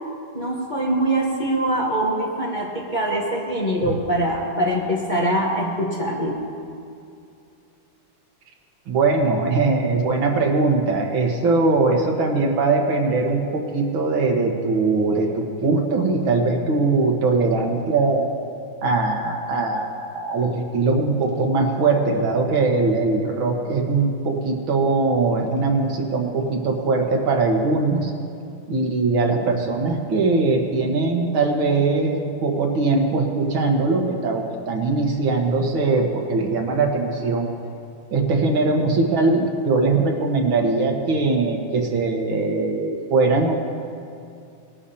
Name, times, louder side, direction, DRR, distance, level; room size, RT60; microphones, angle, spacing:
voice 1, 0.3-6.3, right 1 dB, 30° left, -4 dB, 1.1 m, -23 dB
voice 2, 8.9-18.2 18.8-28.1 28.7-37.5 38.1-43.5, right 3 dB, 75° right, 1 dB, 2.1 m, -21 dB
20.0 x 12.0 x 2.8 m, 2.5 s
omnidirectional pair, 2.2 m